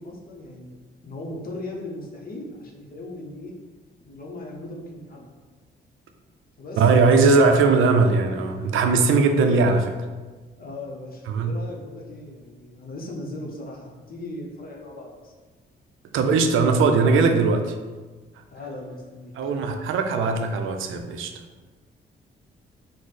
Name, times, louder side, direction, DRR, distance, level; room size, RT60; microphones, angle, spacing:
voice 1, 0.0-3.6 4.1-5.3 6.6-7.1 9.3-9.5 10.6-15.3 18.5-19.3, left 2 dB, 45° left, -1 dB, 0.7 m, -38 dB
voice 2, 6.8-9.9 11.3-11.6 16.1-17.7 19.4-21.3, right 4 dB, 80° right, 6 dB, 0.4 m, -19 dB
4.1 x 2.0 x 3.1 m, 1.3 s
cardioid pair, 80°, 20 cm